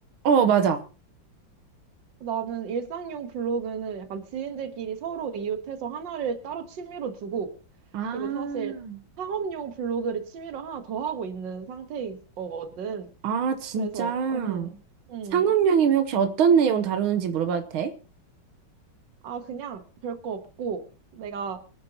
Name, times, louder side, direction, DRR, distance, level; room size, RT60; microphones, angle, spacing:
voice 1, 0.2-0.8 7.9-9.0 13.2-14.7 15.3-17.9, right 7 dB, 85° right, 8 dB, 1.8 m, -23 dB
voice 2, 2.2-7.5 8.1-8.8 9.2-13.1 13.8-14.8 15.1-15.5 19.2-20.9 21.1-21.6, right 6 dB, 65° right, 8 dB, 2.0 m, -33 dB
25.0 x 9.5 x 2.9 m, 0.35 s
omnidirectional pair, 2.2 m